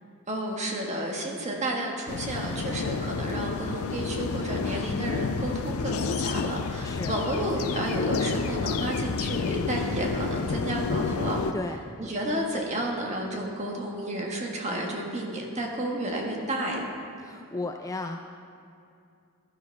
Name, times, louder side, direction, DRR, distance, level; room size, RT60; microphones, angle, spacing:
voice 1, 0.3-11.4 12.0-16.9, right 1 dB, 35° right, 0 dB, 1.6 m, -31 dB
sound 1, 2.1-11.5, left 4 dB, 80° left, 0.5 m, -30 dB
voice 2, 6.8-7.1 11.5-11.8 17.2-18.2, left 2 dB, 15° left, 4 dB, 0.3 m, -34 dB
15.0 x 12.0 x 3.5 m, 2.5 s
head